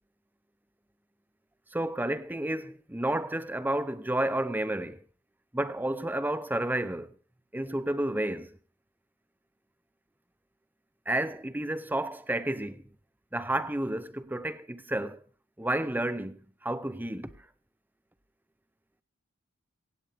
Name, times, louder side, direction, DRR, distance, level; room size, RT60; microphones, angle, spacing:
voice 1, 1.7-5.0 5.5-7.1 7.5-8.6 11.1-12.8 13.3-15.2 15.6-17.4, right 1 dB, 10° right, 0.6 m, -31 dB
17.0 x 16.0 x 3.5 m
head